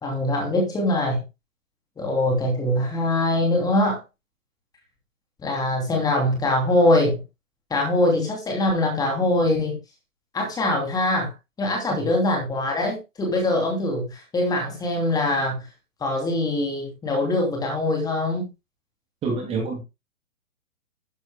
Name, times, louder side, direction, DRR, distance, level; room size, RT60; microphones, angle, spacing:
voice 1, 0.0-1.2 2.0-4.0 5.4-7.2 7.7-9.8 10.3-11.3 11.6-15.7 16.0-18.5, left 1 dB, 10° left, 2.8 m, -23 dB
voice 2, 19.2-19.8, right 3 dB, 15° right, 2.6 m, -27 dB
12.0 x 10.5 x 2.2 m
figure-of-eight pair, 125°, 43 cm